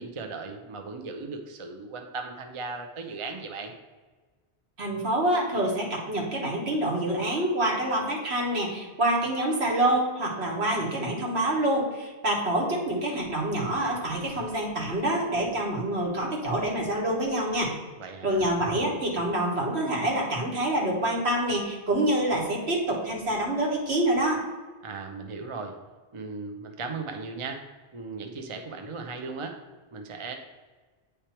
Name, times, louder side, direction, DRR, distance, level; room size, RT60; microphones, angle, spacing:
voice 1, 0.0-3.7 18.0-18.5 24.8-25.8 26.1-29.6 29.9-30.4, right 4 dB, 35° right, 4 dB, 0.6 m, -37 dB
voice 2, 4.8-17.7 18.2-24.4, right 1 dB, 70° right, -2 dB, 1.8 m, -26 dB
8.8 x 3.4 x 4.4 m, 1.3 s
omnidirectional pair, 1.1 m